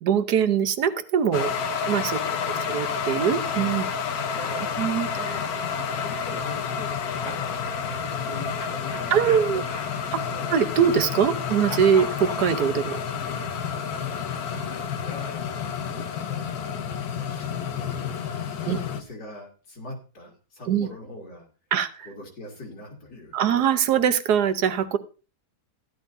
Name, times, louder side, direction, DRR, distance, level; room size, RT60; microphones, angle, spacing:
voice 1, 0.0-1.5 1.9-2.2 2.7-3.9 4.8-5.1 9.1-9.6 10.1-13.0 18.7-18.8 20.7-20.9 21.7-21.9 23.3-25.0, right 8 dB, 80° right, 9 dB, 1.4 m, -22 dB
sound 1, 1.3-19.0, left 6 dB, 70° left, 1.4 m, -30 dB
voice 2, 2.0-3.0 3.5-3.8 4.0-4.8 5.1-5.7 6.0-6.9 7.2-10.5 13.8-15.0 15.6-21.5 22.0-23.4, left 1 dB, 90° left, 0 dB, 3.1 m, -43 dB
sound 2, 6.8-7.7 8.6-11.4 11.7-15.6, left 4 dB, 50° left, 1.7 m, -43 dB
14.5 x 11.0 x 2.6 m, 0.34 s
omnidirectional pair, 1.7 m